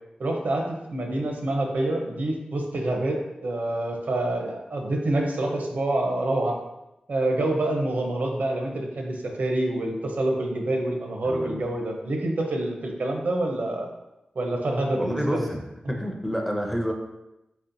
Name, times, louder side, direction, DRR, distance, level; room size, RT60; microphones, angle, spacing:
voice 1, 0.2-6.6 7.1-13.9 14.3-15.5, right 1 dB, 70° right, 2 dB, 0.7 m, -27 dB
voice 2, 11.2-11.6 15.0-15.6 15.9-16.9, equal, ahead, 1 dB, 0.6 m, -28 dB
4.2 x 4.2 x 2.7 m, 0.91 s
wide cardioid pair, 105°, 3 cm